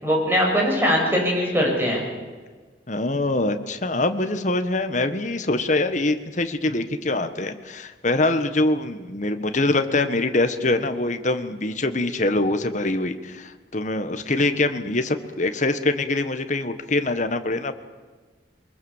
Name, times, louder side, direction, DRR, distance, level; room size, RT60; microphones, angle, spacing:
voice 1, 0.0-2.0, equal, 15° right, -1 dB, 7.5 m, -21 dB
voice 2, 2.9-17.7, left 2 dB, 45° left, 8 dB, 1.5 m, -24 dB
24.0 x 22.0 x 7.4 m, 1.4 s
head